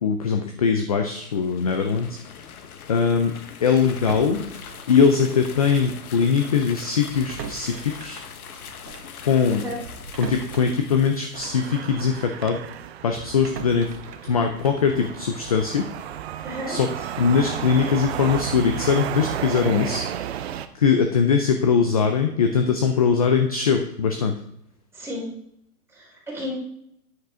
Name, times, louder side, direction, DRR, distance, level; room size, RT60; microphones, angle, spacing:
voice 1, 0.0-2.2 2.9-3.3 3.6-4.5 4.9-8.2 9.2-9.6 10.2-12.6 13.0-13.9 14.3-15.9 16.7-16.9 17.2-20.0 20.3-20.5 20.7-24.4, left 6 dB, 25° left, 5 dB, 0.4 m, -21 dB
sound 1, 1.1-11.9, left 7 dB, 60° left, 1.3 m, -42 dB
sound 2, 3.9-5.9 6.2-6.4 7.0-12.2 12.7-15.7, right 5 dB, 80° right, 1.5 m, -41 dB
voice 2, 9.5-9.8 16.4-16.8 24.9-25.3 25.9-26.5, left 1 dB, 5° right, -5 dB, 3.6 m, -33 dB
sound 3, 11.3-20.7, right 10 dB, 40° right, 0.6 m, -33 dB
9.4 x 9.2 x 3.6 m, 0.75 s
hypercardioid pair, 135°, 48 cm